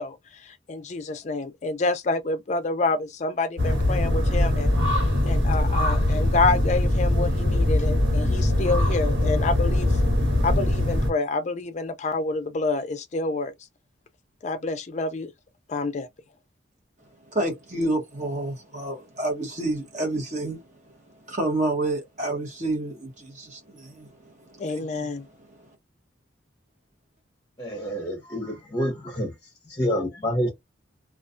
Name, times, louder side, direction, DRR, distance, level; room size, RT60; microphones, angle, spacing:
voice 1, 0.0-4.7 5.3-10.0 10.4-13.5 14.4-15.3 15.7-16.1 24.6-25.3, left 3 dB, 35° left, 0.4 m, -28 dB
sound 1, 3.6-11.1, left 1 dB, 75° right, 1.4 m, -22 dB
voice 2, 17.3-20.7 21.1-25.1 25.5-25.7, right 2 dB, 40° right, 1.0 m, -29 dB
voice 3, 27.6-29.3 29.7-30.5, equal, 20° left, 0.8 m, -27 dB
2.3 x 2.3 x 2.4 m
head